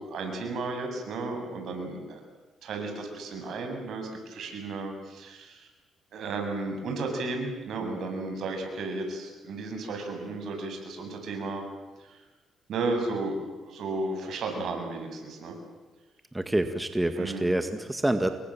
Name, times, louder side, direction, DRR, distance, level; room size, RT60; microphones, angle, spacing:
voice 1, 0.0-2.2 2.6-5.7 6.1-11.7 12.0-12.2 12.7-15.5 17.2-17.5, right 3 dB, 70° right, 3 dB, 8.0 m, -34 dB
voice 2, 16.3-18.3, right 1 dB, 10° right, 8 dB, 2.0 m, -27 dB
29.0 x 22.5 x 7.7 m, 1.2 s
cardioid pair, 90°, 0 cm